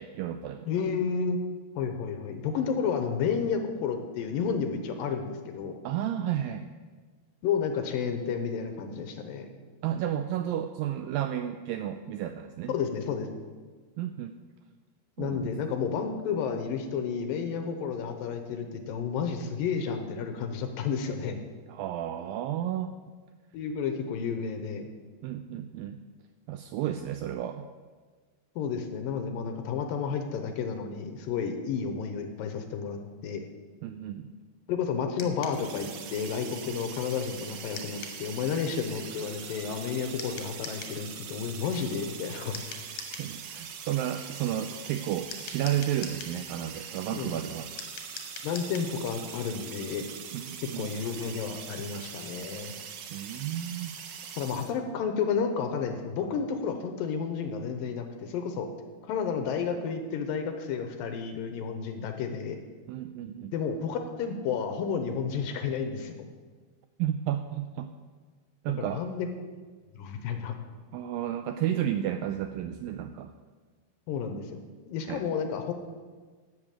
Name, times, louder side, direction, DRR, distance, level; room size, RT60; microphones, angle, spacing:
voice 1, 0.0-0.7 5.8-6.7 9.8-12.7 14.0-14.3 15.2-15.5 21.7-22.9 25.2-26.0 26.5-27.7 33.8-34.3 43.2-47.7 50.3-50.9 53.1-53.9 62.9-63.5 67.0-67.9 68.6-69.0 70.9-73.3 75.1-75.2, right 11 dB, 85° right, 9 dB, 2.0 m, -32 dB
voice 2, 0.7-1.4 1.8-5.7 7.4-9.5 12.7-13.3 15.2-21.4 23.5-24.9 28.6-33.5 34.7-42.8 47.1-47.4 48.4-50.0 50.8-52.7 54.4-58.7 59.0-62.6 63.5-66.2 68.8-69.3 70.0-70.5 74.1-74.5 74.9-75.7, left 6 dB, 75° left, 6 dB, 2.4 m, -31 dB
sound 1, 35.2-35.6 37.8-38.2 40.2-41.0 42.5-43.3 45.3-46.4 47.8-48.9, left 6 dB, 60° left, 2.1 m, -42 dB
sound 2, 35.5-54.7, right 7 dB, 70° right, 2.2 m, -42 dB
11.5 x 7.3 x 8.9 m, 1.5 s
omnidirectional pair, 4.6 m